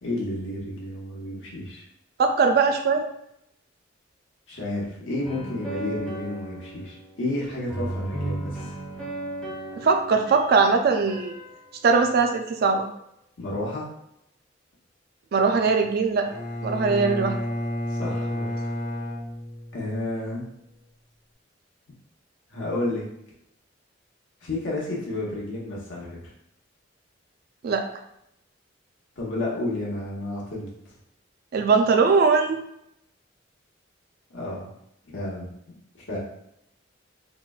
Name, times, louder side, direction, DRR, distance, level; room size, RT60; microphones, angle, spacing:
voice 1, 0.0-1.8 4.5-8.7 13.4-13.9 16.8-16.9 17.9-18.6 19.7-20.4 22.5-23.0 24.4-26.3 29.2-30.7 34.3-34.7 35.0-35.5 36.1-36.2, left 2 dB, 75° left, -4 dB, 0.9 m, -31 dB
voice 2, 2.2-3.1 9.8-11.3 11.8-12.9 15.3-16.3 16.6-17.4 27.6-27.9 31.5-32.6, right 4 dB, 50° right, 5 dB, 0.3 m, -20 dB
sound 1, 5.2-7.4 7.7-12.1 17.1-19.1, right 1 dB, 5° left, 0.5 m, -36 dB
Bowed string instrument, 16.3-20.1, left 1 dB, 25° left, 0.9 m, -31 dB
3.8 x 2.1 x 2.3 m, 0.79 s
head